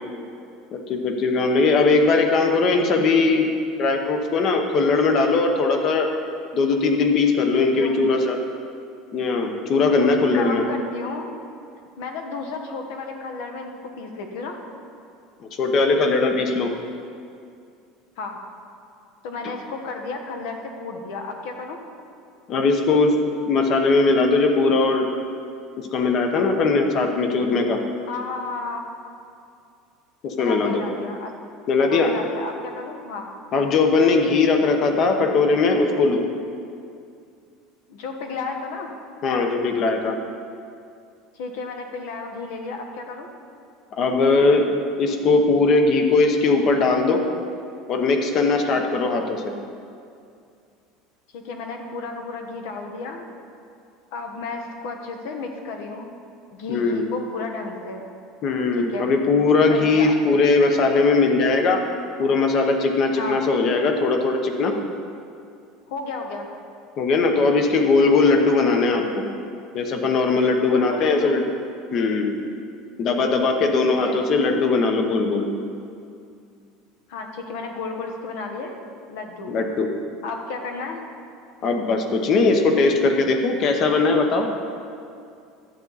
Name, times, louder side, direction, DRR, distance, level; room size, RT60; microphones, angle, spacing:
voice 1, 0.7-3.5 3.8-6.1 6.5-8.4 9.1-10.6 15.6-16.7 22.5-23.2 23.5-25.1 25.8-27.8 30.2-30.8 31.7-32.1 33.5-36.2 39.2-40.2 43.9-44.7 45.0-47.2 47.9-49.5 56.7-57.1 58.4-61.8 62.2-64.7 67.0-69.2 69.7-71.5 71.9-72.4 73.0-75.5 79.5-79.9 81.6-84.5, left 3 dB, 35° left, 4 dB, 0.9 m, -19 dB
voice 2, 7.5-8.0 10.0-11.3 12.0-14.6 18.2-18.4 19.2-21.8 28.1-28.8 30.4-31.3 31.9-33.3 37.9-38.9 41.3-43.3 51.3-53.2 54.1-56.1 56.5-58.0 58.7-59.1 59.7-60.1 63.2-63.4 65.9-66.5 70.6-71.4 73.9-74.3 77.1-78.8 79.1-79.5 80.2-81.0, left 3 dB, 70° left, 3 dB, 1.3 m, -32 dB
12.0 x 8.4 x 4.1 m, 2.4 s
cardioid pair, 170°, 0 cm